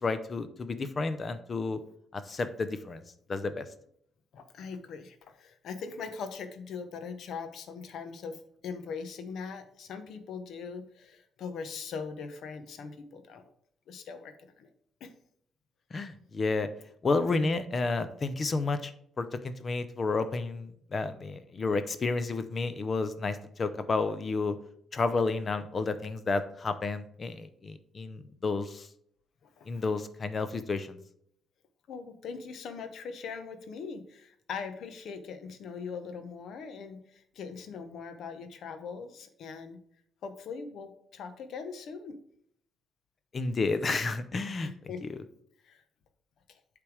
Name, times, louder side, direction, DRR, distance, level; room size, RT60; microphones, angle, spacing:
voice 1, 0.0-1.8 2.1-3.0 3.3-3.7 15.9-16.7 17.0-18.9 19.2-24.6 24.9-28.9 29.7-31.0 43.3-44.7, left 3 dB, 40° left, 11 dB, 0.6 m, -31 dB
voice 2, 4.3-13.4 13.9-14.7 15.0-15.1 29.4-29.8 31.9-39.8 40.2-42.2 44.6-45.0 45.6-45.8 46.5-46.6, left 5 dB, 70° left, 8 dB, 0.9 m, -41 dB
8.3 x 3.4 x 4.8 m, 0.67 s
cardioid pair, 90°, 0 cm